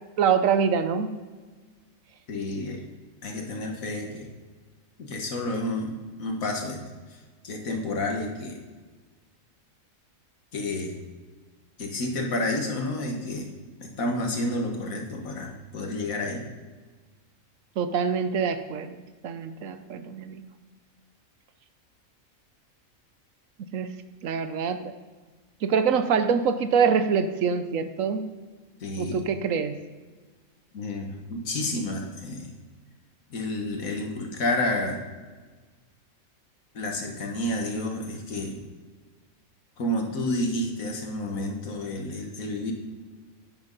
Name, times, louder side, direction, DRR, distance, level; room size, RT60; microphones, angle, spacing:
voice 1, 0.2-1.1 17.8-19.0 19.2-20.4 23.7-23.9 24.2-24.9 25.6-28.3 29.0-29.8, right 6 dB, 75° right, 10 dB, 1.1 m, -25 dB
voice 2, 2.3-2.8 3.2-4.3 5.0-5.9 6.2-6.8 7.4-8.6 10.5-11.0 11.8-13.5 13.8-16.4 28.8-29.2 30.7-32.5 33.3-35.0 36.7-38.6 39.8-42.7, left 1 dB, 80° left, 2 dB, 1.9 m, -30 dB
11.0 x 9.6 x 4.0 m, 1.4 s
omnidirectional pair, 1.4 m